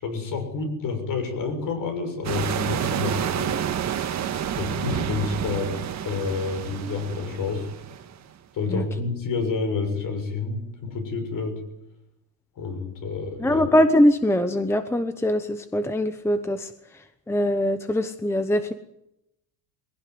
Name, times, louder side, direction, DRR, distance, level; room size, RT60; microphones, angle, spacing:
voice 1, 0.0-3.6 4.6-7.7 8.5-11.6 12.6-13.6, left 4 dB, 45° left, 7 dB, 6.6 m, -29 dB
sound 1, 2.2-8.2, right 9 dB, 35° right, 1.9 m, -29 dB
voice 2, 13.4-18.7, left 1 dB, 5° left, 10 dB, 0.9 m, -22 dB
22.5 x 16.5 x 9.5 m, 0.83 s
cardioid pair, 160°, 46 cm